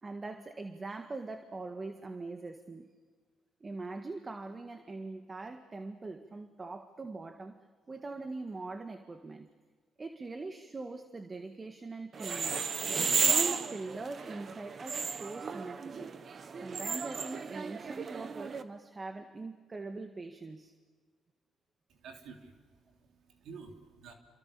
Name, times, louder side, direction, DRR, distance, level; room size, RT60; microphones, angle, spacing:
voice 1, 0.0-2.9 3.6-7.6 7.9-9.5 10.0-12.7 13.2-16.2 16.6-20.7, right 3 dB, 30° right, 7 dB, 1.8 m, -42 dB
sound 1, 12.1-18.6, right 5 dB, 45° right, 1.5 m, -33 dB
voice 2, 21.9-23.0 23.3-24.1, right 5 dB, 80° right, 3 dB, 3.5 m, -50 dB
28.5 x 26.0 x 6.9 m, 1.5 s
cardioid pair, 90°, 0 cm